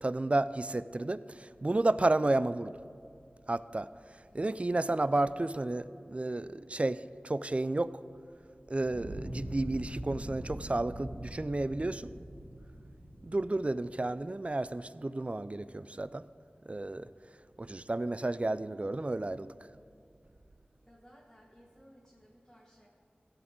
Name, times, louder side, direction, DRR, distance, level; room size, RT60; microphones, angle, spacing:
voice 1, 0.0-2.8 3.5-3.9 4.3-7.9 8.7-12.1 13.2-16.2 16.7-17.1 17.6-19.5, right 2 dB, 35° right, 16 dB, 0.3 m, -32 dB
Fire, 8.7-13.9, right 1 dB, 85° right, 1.4 m, -43 dB
voice 2, 20.8-22.9, equal, 5° left, -5 dB, 1.7 m, -59 dB
16.0 x 6.4 x 4.5 m, 2.4 s
wide cardioid pair, 45°, 4 cm